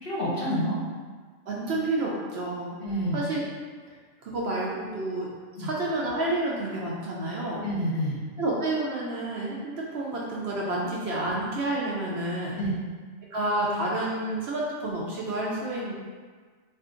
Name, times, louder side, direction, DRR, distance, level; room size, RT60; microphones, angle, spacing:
voice 1, 0.0-0.8 2.8-3.2 5.6-5.7 7.6-8.2 12.6-12.7, equal, 50° left, -7 dB, 0.8 m, -28 dB
voice 2, 1.5-2.8 3.1-3.4 4.2-5.3 5.6-7.6 8.4-12.6 13.3-15.9, right 2 dB, 65° right, -4 dB, 0.7 m, -29 dB
2.6 x 2.4 x 3.6 m, 1.5 s
omnidirectional pair, 1.3 m